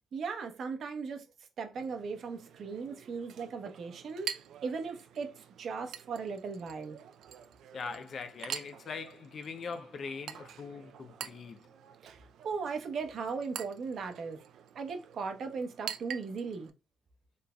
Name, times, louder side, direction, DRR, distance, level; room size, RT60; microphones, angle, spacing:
voice 1, 0.1-1.2 1.6-7.0 12.0-14.4 14.7-16.7, right 5 dB, 60° right, 0.9 m, -38 dB
Chink clink, 1.7-16.7, right 9 dB, 75° right, 0.4 m, -46 dB
voice 2, 7.7-11.7, left 5 dB, 55° left, 0.4 m, -41 dB
4.0 x 3.3 x 2.2 m
cardioid pair, 90°, 0 cm